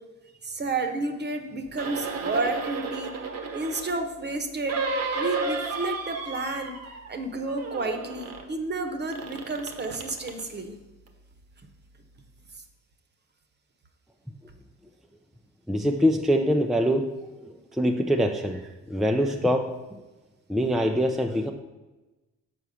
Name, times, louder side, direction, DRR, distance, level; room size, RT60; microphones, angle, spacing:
voice 1, 0.4-3.1 3.5-4.8 5.1-6.8 7.1-10.7, right 2 dB, 35° right, 6 dB, 1.0 m, -31 dB
sound 1, 1.7-4.0 4.7-7.2 7.4-8.5 9.1-10.4 11.1-11.2, right 4 dB, 55° right, 1.1 m, -33 dB
voice 2, 15.7-17.2 17.4-20.0 20.5-21.5, equal, ahead, 3 dB, 0.5 m, -24 dB
6.9 x 4.6 x 6.3 m, 1.1 s
cardioid pair, 90°, 30 cm